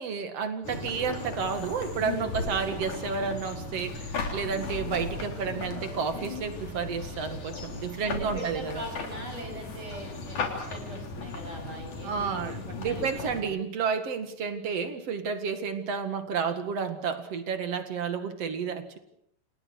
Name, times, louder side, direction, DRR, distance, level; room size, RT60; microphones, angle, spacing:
voice 1, 0.0-8.8 12.0-19.0, right 6 dB, 55° right, 8 dB, 2.9 m, -31 dB
sound 1, 0.6-13.4, left 3 dB, 75° left, 4.9 m, -36 dB
voice 2, 8.0-13.6, right 1 dB, 30° right, 2 dB, 8.0 m, -41 dB
29.0 x 28.5 x 4.8 m, 0.75 s
omnidirectional pair, 3.4 m